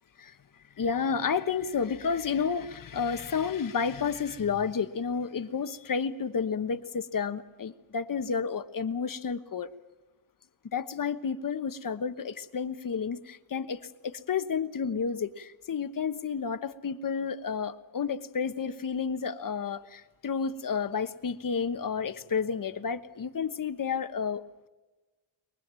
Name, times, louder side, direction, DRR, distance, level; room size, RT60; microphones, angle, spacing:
voice 1, 0.8-9.7 10.7-24.4, left 6 dB, 45° left, 10 dB, 1.3 m, -31 dB
23.5 x 20.5 x 7.7 m, 1.2 s
cardioid pair, 100°, 46 cm